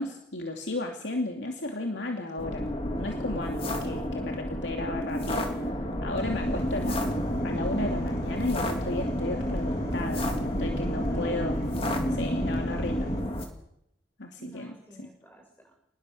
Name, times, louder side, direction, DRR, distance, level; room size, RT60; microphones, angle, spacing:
voice 1, 0.0-2.7 3.0-5.7 6.0-7.0 7.4-10.3 10.6-11.6 12.1-13.1 14.2-14.7, left 2 dB, 80° left, 2 dB, 2.7 m, -34 dB
sound 1, 2.4-13.5, equal, 35° left, 3.3 m, -30 dB
sound 2, 6.1-13.2, equal, 55° left, 6.0 m, -36 dB
voice 2, 11.0-11.7 14.3-15.7, equal, 10° left, 0 dB, 5.7 m, -50 dB
28.5 x 19.5 x 6.5 m, 0.75 s
head